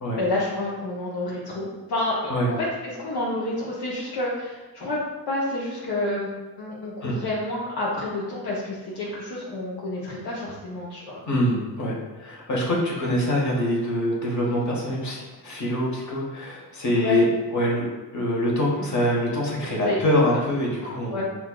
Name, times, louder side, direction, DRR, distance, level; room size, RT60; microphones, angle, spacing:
voice 1, 0.2-2.2 2.5-5.0 5.3-6.3 6.6-11.2 17.0-17.2 19.8-20.0 21.1-21.2, left 2 dB, 60° left, -6 dB, 0.9 m, -29 dB
voice 2, 11.3-17.9 18.1-21.2, equal, 40° left, -2 dB, 1.2 m, -24 dB
5.6 x 2.3 x 2.3 m, 1.2 s
cardioid pair, 65°, 43 cm